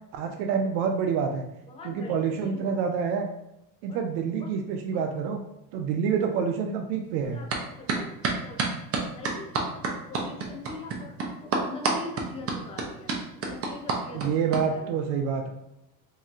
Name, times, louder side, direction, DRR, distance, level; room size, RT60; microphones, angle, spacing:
voice 1, 0.1-1.4 1.8-3.3 3.8-5.4 5.7-7.4 14.1-15.5, right 6 dB, 80° right, 3 dB, 0.6 m, -27 dB
voice 2, 1.7-3.0 3.9-4.0 4.4-4.5 4.9-5.1 7.2-8.6 9.1-15.2, left 3 dB, 15° left, 1 dB, 0.4 m, -43 dB
sound 1, 7.5-7.6 7.9-14.6, right 4 dB, 30° right, 0.6 m, -28 dB
3.0 x 2.7 x 2.4 m, 0.86 s
supercardioid pair, 90°, 50 cm